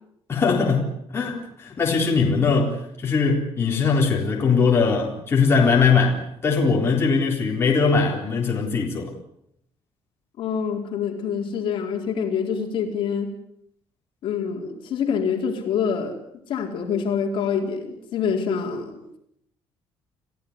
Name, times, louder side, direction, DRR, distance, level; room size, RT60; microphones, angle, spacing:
voice 1, 0.3-9.1, left 5 dB, 25° left, 4.0 m, -21 dB
voice 2, 10.4-13.3 14.2-16.2 16.5-19.2, left 6 dB, 55° left, 4.4 m, -26 dB
30.0 x 15.0 x 9.8 m
cardioid pair, 175°, 10 cm